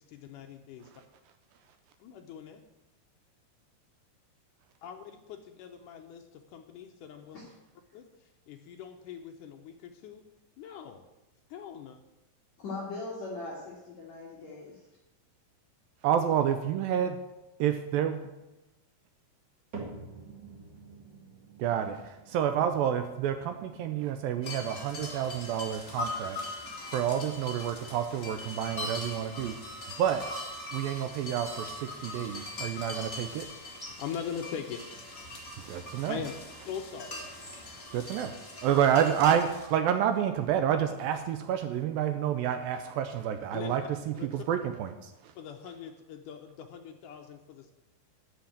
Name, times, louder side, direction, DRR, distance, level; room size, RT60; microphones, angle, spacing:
voice 1, 0.1-0.9 2.0-2.6 4.8-7.4 7.9-8.1 8.5-10.2 10.6-11.0 11.5-12.0 34.0-34.8 36.1-36.3 36.7-37.2 43.5-43.7 44.1-44.3 45.3-47.7, left 8 dB, 80° left, 4 dB, 1.8 m, -41 dB
voice 2, 12.6-14.8, left 3 dB, 50° left, -5 dB, 2.9 m, -40 dB
voice 3, 16.0-17.2 17.6-18.2 21.6-26.4 26.9-29.6 30.0-30.3 30.7-33.5 35.6-36.2 37.9-38.3 38.6-44.9 45.2-45.3, right 9 dB, 80° right, 8 dB, 2.3 m, -29 dB
sound 1, 19.7-36.0 36.4-36.9 37.5-37.6 38.4-38.5, right 3 dB, 45° right, 1.4 m, -52 dB
sound 2, 24.4-39.7, left 2 dB, 30° left, 2.0 m, -41 dB
sound 3, 32.9-36.4 37.0-38.1, left 1 dB, 5° right, 0.5 m, -55 dB
11.5 x 5.8 x 8.8 m, 0.98 s
omnidirectional pair, 4.6 m